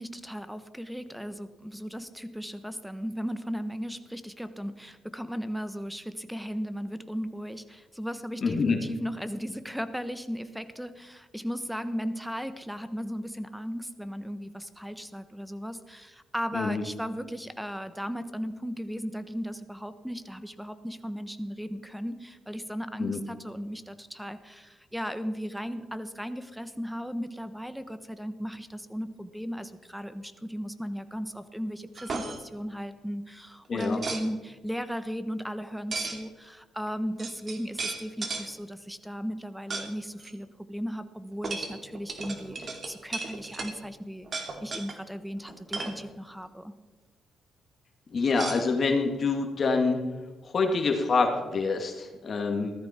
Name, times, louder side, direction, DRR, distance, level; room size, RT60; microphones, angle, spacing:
voice 1, 0.0-46.7, equal, ahead, 12 dB, 1.2 m, -36 dB
voice 2, 8.4-8.8 16.5-16.8 23.0-23.2 33.7-34.0 48.1-50.0 50.4-52.7, left 4 dB, 50° left, 3 dB, 2.1 m, -26 dB
sound 1, 31.9-32.4 33.8-34.2 35.9-36.2 36.9-37.0 37.2-38.5 39.7-39.9 40.2-40.3 41.4-43.8 44.2-45.0 45.4-46.0 48.3-49.2, right 3 dB, 45° right, 2.6 m, -35 dB
16.5 x 13.5 x 4.4 m, 1.2 s
cardioid pair, 75°, 0 cm